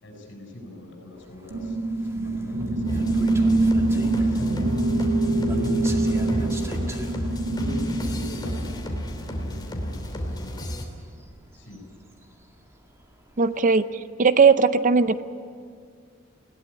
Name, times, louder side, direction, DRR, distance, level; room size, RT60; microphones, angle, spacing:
voice 1, 0.0-3.1 3.8-6.5 7.5-8.9 9.4-10.6 11.5-11.8, left 1 dB, 60° left, 1 dB, 6.7 m, -40 dB
sound 1, 1.2-13.6, right 1 dB, 15° right, 2.1 m, -41 dB
sound 2, 1.5-9.3, right 2 dB, 90° right, 2.0 m, -25 dB
sound 3, 2.9-10.8, equal, 20° left, 3.0 m, -32 dB
voice 2, 13.4-13.9 14.2-15.2, right 5 dB, 40° right, 13 dB, 0.6 m, -18 dB
20.5 x 17.5 x 9.9 m, 2.1 s
head